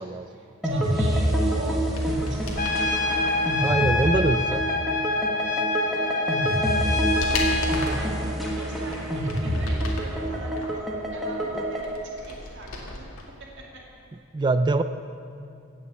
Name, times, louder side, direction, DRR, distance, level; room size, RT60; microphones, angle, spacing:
voice 1, 0.3-3.4 5.9-10.8 11.1-12.9, right 2 dB, 55° right, -3 dB, 2.4 m, -42 dB
sound 1, 0.6-11.9, equal, ahead, 1.5 m, -27 dB
sound 2, 1.8-2.8 5.9-6.0 6.4-8.1 8.7-10.2 10.6-13.2 13.5-13.6, left 2 dB, 85° left, 2.1 m, -36 dB
Trumpet, 2.6-7.8, left 3 dB, 40° left, 1.1 m, -26 dB
voice 2, 3.6-4.6 11.5-11.6 14.3-14.8, right 2 dB, 20° right, 11 dB, 0.3 m, -23 dB
17.0 x 6.2 x 8.1 m, 2.5 s
head